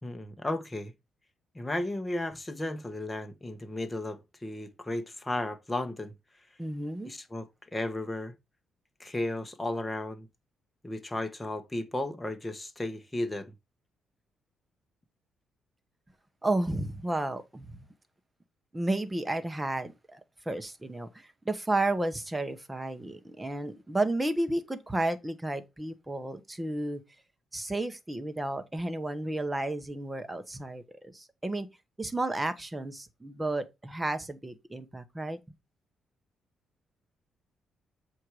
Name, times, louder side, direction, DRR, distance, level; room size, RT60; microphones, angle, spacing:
voice 1, 0.0-0.9 1.5-6.1 7.0-7.5 7.7-8.3 9.0-10.3 10.8-13.5, left 1 dB, 15° left, 1.4 m, -34 dB
voice 2, 6.6-7.1 16.4-17.8 18.7-20.2 20.4-27.0 27.5-31.7 32.0-35.4, right 2 dB, 10° right, 1.3 m, -32 dB
7.7 x 4.6 x 4.9 m
cardioid pair, 110°, 0 cm